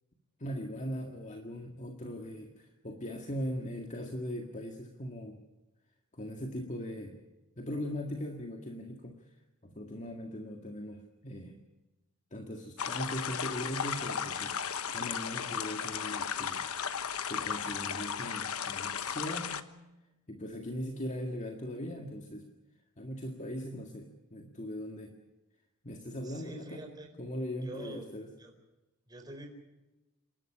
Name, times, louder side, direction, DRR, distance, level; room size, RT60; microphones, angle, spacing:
voice 1, 0.4-5.4 6.1-7.2 7.6-9.3 9.6-11.6 12.3-16.7 17.2-19.6 20.3-22.4 23.0-25.1 25.8-26.8 27.2-28.3, equal, 35° left, 3 dB, 1.9 m, -39 dB
sound 1, 12.8-19.6, left 7 dB, 70° left, 1.1 m, -35 dB
voice 2, 26.2-27.1 27.6-28.1 28.4-28.5 29.1-29.5, right 2 dB, 20° right, 3 dB, 4.5 m, -46 dB
27.5 x 12.5 x 10.0 m, 1.0 s
head